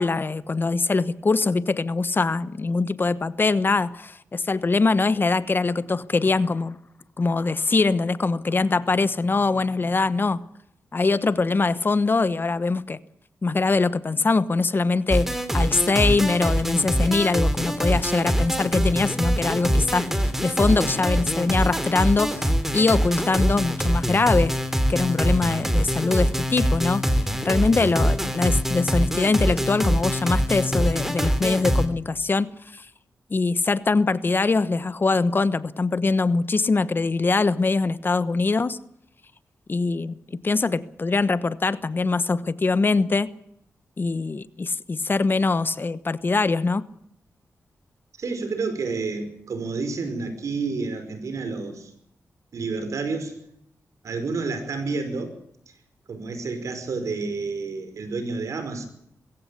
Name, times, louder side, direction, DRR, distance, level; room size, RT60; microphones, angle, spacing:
voice 1, 0.0-6.8 7.2-10.4 10.9-13.0 13.4-24.5 24.9-32.9 33.3-38.8 39.7-43.3 44.0-46.8, left 3 dB, 40° left, 1.1 m, -23 dB
sound 1, 15.1-31.9, equal, 5° right, 3.0 m, -24 dB
voice 2, 48.2-51.9 52.5-53.4 54.0-55.4 56.1-58.9, right 4 dB, 75° right, 5.2 m, -29 dB
22.5 x 16.0 x 8.4 m
cardioid pair, 80°, 5 cm